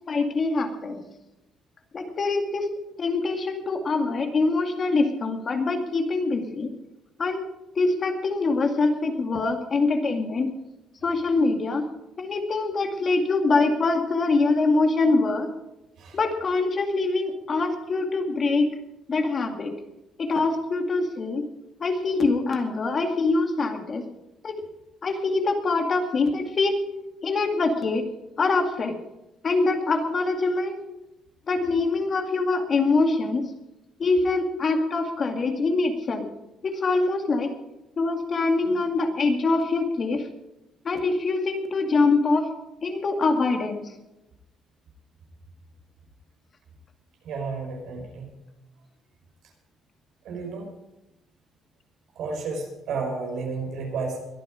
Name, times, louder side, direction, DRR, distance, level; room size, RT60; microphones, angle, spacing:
voice 1, 0.1-1.0 1.9-2.7 3.0-6.7 7.2-7.5 7.8-10.5 11.0-11.8 12.2-15.5 16.1-18.7 19.1-19.7 20.2-21.4 21.8-24.1 24.4-24.5 25.0-26.8 27.2-28.0 28.4-29.0 29.4-30.8 31.5-33.4 34.0-36.3 36.6-37.5 38.0-40.3 40.8-42.5 42.8-43.8, left 3 dB, 40° left, 5 dB, 2.2 m, -24 dB
voice 2, 47.2-48.3 50.2-50.6 52.2-54.2, right 4 dB, 75° right, 1 dB, 5.5 m, -32 dB
22.0 x 9.5 x 5.0 m, 0.96 s
cardioid pair, 110°, 0 cm